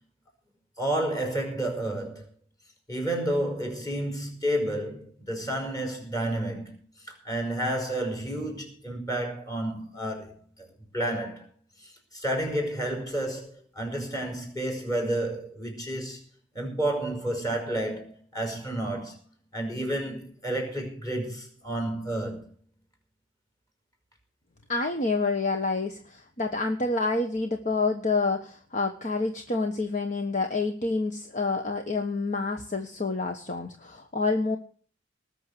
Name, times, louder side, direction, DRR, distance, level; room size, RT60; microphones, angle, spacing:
voice 1, 0.8-2.2 2.9-10.7 10.9-11.5 11.8-16.2 16.6-19.2 19.5-22.5, right 1 dB, 20° left, 5.3 m, -31 dB
voice 2, 24.7-34.6, left 3 dB, 40° left, 1.3 m, -28 dB
19.5 x 6.6 x 8.3 m
head